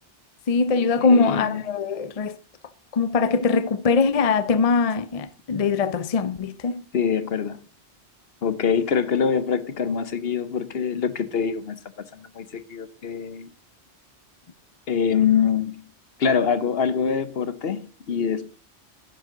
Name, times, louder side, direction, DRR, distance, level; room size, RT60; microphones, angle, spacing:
voice 1, 0.5-2.4 2.9-6.8, left 4 dB, 40° left, 0.6 m, -22 dB
voice 2, 1.0-1.6 6.9-7.6 8.4-11.8 12.1-13.5 14.9-15.8 16.2-18.6, left 7 dB, 65° left, 1.1 m, -24 dB
10.5 x 9.2 x 3.8 m
omnidirectional pair, 1.1 m